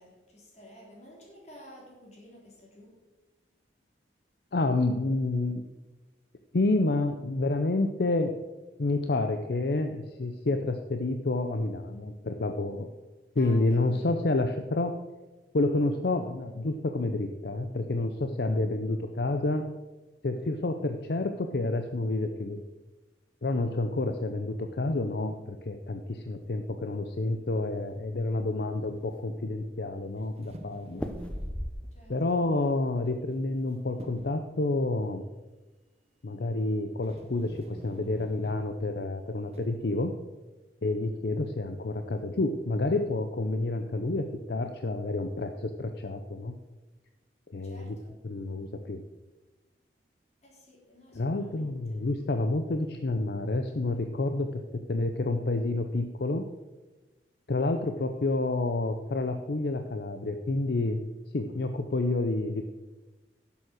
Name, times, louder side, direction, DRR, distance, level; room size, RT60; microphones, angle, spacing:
voice 1, 0.0-2.9 13.4-14.1 31.9-32.4 47.6-48.2 50.4-51.8, equal, 40° left, -2 dB, 3.5 m, -52 dB
voice 2, 4.5-5.6 6.5-8.3 8.8-12.9 13.4-14.9 15.5-19.7 20.2-22.6 23.4-31.0 32.1-35.2 36.2-40.2 40.8-46.5 47.5-48.0 48.2-49.0 51.1-54.6 54.9-56.5 57.5-61.0 61.3-62.6, left 2 dB, 65° left, 7 dB, 0.6 m, -29 dB
sound 1, 27.1-28.0 28.4-28.5 28.8-29.5 30.9-32.2 32.5-33.0, equal, 5° left, 0.7 m, -37 dB
sound 2, 30.2-31.6 33.1-33.7 34.0-34.5 36.5-36.6 37.0-38.7 39.5-39.9, right 1 dB, 35° right, 0.9 m, -48 dB
10.5 x 7.1 x 6.4 m, 1.2 s
head